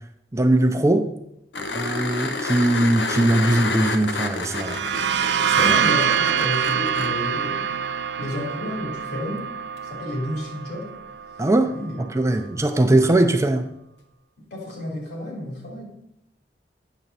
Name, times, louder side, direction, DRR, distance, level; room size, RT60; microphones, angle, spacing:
voice 1, 0.3-1.1 1.7-4.8 5.5-5.8 11.4-13.7, right 1 dB, 15° right, 7 dB, 0.5 m, -20 dB
sound 1, 1.5-7.1 9.8-9.9, left 3 dB, 90° left, 1.0 m, -29 dB
sound 2, 4.3-11.9, right 8 dB, 70° right, 0.4 m, -25 dB
voice 2, 5.6-7.8 8.2-9.5 9.8-11.0 11.7-12.3 14.4-15.8, left 1 dB, 65° left, -1 dB, 3.3 m, -31 dB
9.0 x 6.9 x 4.1 m, 0.80 s
head